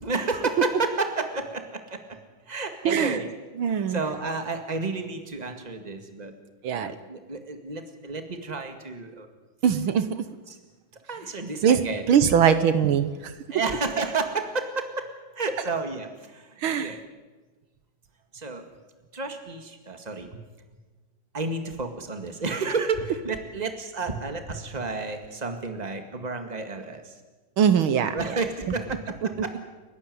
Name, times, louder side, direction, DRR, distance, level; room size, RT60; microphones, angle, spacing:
voice 1, 0.0-2.2 2.5-3.3 3.7-6.3 6.7-9.3 10.5-10.6 11.1-12.0 13.5-15.1 15.3-17.0 18.3-18.6 19.1-20.3 21.3-27.2 28.1-29.6, right 3 dB, 20° right, 6 dB, 2.0 m, -31 dB
voice 2, 2.8-3.2 3.6-4.0 6.6-6.9 9.6-10.2 11.6-11.8 12.1-13.1 16.6-17.0 27.6-28.1, right 8 dB, 80° right, 12 dB, 1.9 m, -21 dB
30.0 x 11.5 x 9.5 m, 1.3 s
omnidirectional pair, 2.3 m